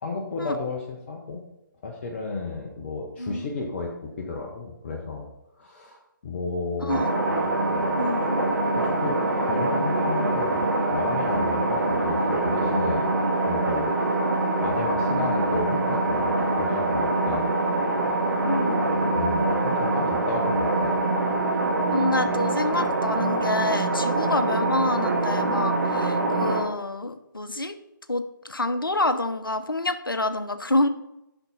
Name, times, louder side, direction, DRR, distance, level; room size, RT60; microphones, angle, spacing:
voice 1, 0.0-1.4 1.8-5.3 5.6-7.0 8.7-9.2 9.5-13.1 13.5-14.1 14.6-17.5 19.1-21.0, left 3 dB, 35° left, 0 dB, 1.0 m, -33 dB
voice 2, 6.8-7.1 7.9-8.4 18.4-18.8 21.9-27.7 28.1-30.9, left 2 dB, 80° left, 10 dB, 0.7 m, -27 dB
sound 1, 6.9-26.6, right 2 dB, 60° right, 1.9 m, -24 dB
7.9 x 5.8 x 4.0 m, 0.88 s
figure-of-eight pair, 140°, 11 cm